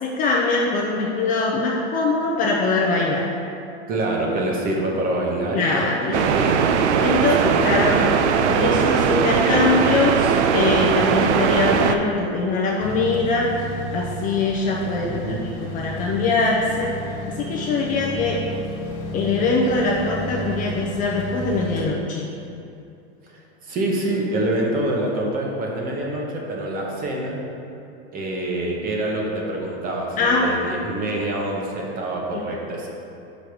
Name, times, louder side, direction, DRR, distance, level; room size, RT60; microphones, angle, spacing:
voice 1, 0.0-3.3 5.5-6.2 7.0-8.2 8.5-13.5 13.9-15.1 15.6-18.4 19.1-22.3 30.2-30.5 32.3-32.5, left 3 dB, 25° left, -3 dB, 0.5 m, -22 dB
voice 2, 3.9-6.6 7.2-8.1 15.0-15.4 23.3-27.4 28.1-32.9, right 1 dB, 25° right, -1 dB, 1.0 m, -26 dB
sound 1, 6.1-12.0, right 7 dB, 85° right, 0.6 m, -19 dB
sound 2, 12.8-21.9, equal, 40° left, 1.6 m, -32 dB
5.1 x 4.5 x 6.2 m, 2.7 s
supercardioid pair, 145°, 34 cm